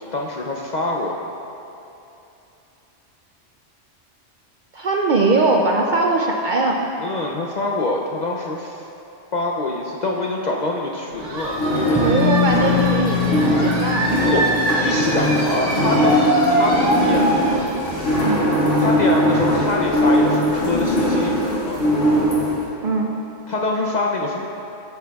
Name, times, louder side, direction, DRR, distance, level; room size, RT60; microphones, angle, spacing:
voice 1, 0.1-1.2 7.0-8.8 9.3-12.3 12.6-12.7 14.2-14.4 14.8-17.6 18.8-21.8 23.5-24.5, left 2 dB, 55° left, -1 dB, 0.5 m, -25 dB
voice 2, 4.7-6.9 12.0-14.4 18.2-18.4 22.8-23.1, right 3 dB, 55° right, 0 dB, 0.5 m, -21 dB
sound 1, 11.1-20.6, right 1 dB, 80° right, 1.5 m, -24 dB
sound 2, 11.4-22.6, equal, 85° left, 2.4 m, -20 dB
sound 3, 11.9-16.8, left 9 dB, 5° right, 1.7 m, -25 dB
13.5 x 7.9 x 2.3 m, 2.9 s
omnidirectional pair, 1.2 m